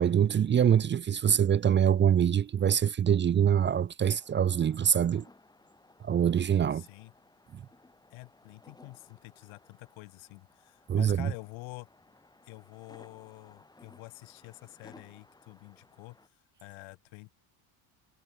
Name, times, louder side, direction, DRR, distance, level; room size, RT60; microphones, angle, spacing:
voice 1, 0.0-5.2 6.0-6.8 10.9-11.3, right 8 dB, 20° right, 0.7 m, -24 dB
sound 1, 4.1-16.3, left 2 dB, 10° left, 4.0 m, -59 dB
voice 2, 6.7-7.1 8.1-11.9 12.4-16.3 16.6-17.3, left 24 dB, 70° left, 3.1 m, -48 dB
cardioid pair, 160°, 49 cm